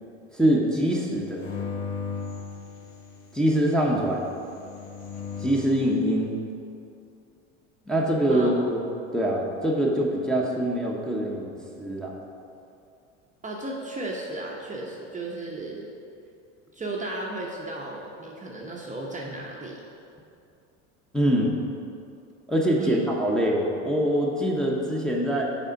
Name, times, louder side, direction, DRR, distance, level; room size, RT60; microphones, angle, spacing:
voice 1, 0.3-1.4 3.3-4.3 5.4-6.3 7.9-8.8 9.1-12.2 21.1-21.5 22.5-25.4, right 1 dB, ahead, -3 dB, 1.0 m, -24 dB
sound 1, 1.4-3.3 4.3-5.8, left 6 dB, 65° left, 1.2 m, -36 dB
voice 2, 13.4-15.9 16.7-19.8 22.8-23.1, right 2 dB, 20° right, -2 dB, 0.8 m, -35 dB
6.5 x 4.3 x 5.2 m, 2.6 s
hypercardioid pair, 85°, 38 cm